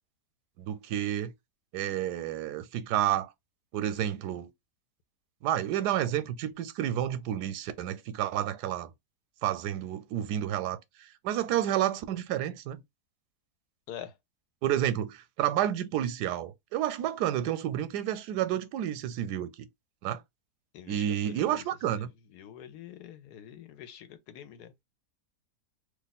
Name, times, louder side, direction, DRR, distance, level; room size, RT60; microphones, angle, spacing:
voice 1, 0.6-1.3 1.7-3.3 3.7-4.5 5.4-8.9 9.4-12.8 14.6-19.7 20.0-20.2 20.9-22.1, right 11 dB, 85° right, 1.1 m, -30 dB
voice 2, 20.7-21.6 21.9-24.7, left 10 dB, 80° left, 1.2 m, -46 dB
2.7 x 2.4 x 4.0 m
omnidirectional pair, 1.7 m